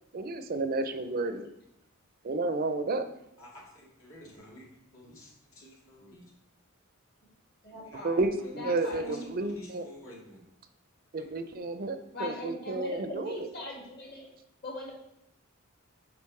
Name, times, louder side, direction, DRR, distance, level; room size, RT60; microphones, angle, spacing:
voice 1, 0.1-1.5 2.2-3.1 8.0-9.9 11.1-13.4, right 2 dB, 45° right, 9 dB, 0.4 m, -31 dB
voice 2, 3.4-4.7 4.9-6.3 7.8-8.1 8.4-9.2 9.4-10.5 11.2-11.3, left 1 dB, 70° left, -3 dB, 2.0 m, -50 dB
voice 3, 7.6-8.3 8.6-9.3 12.1-14.3 14.6-14.9, left 1 dB, 50° left, -3 dB, 1.9 m, -40 dB
7.0 x 5.0 x 3.2 m, 0.82 s
head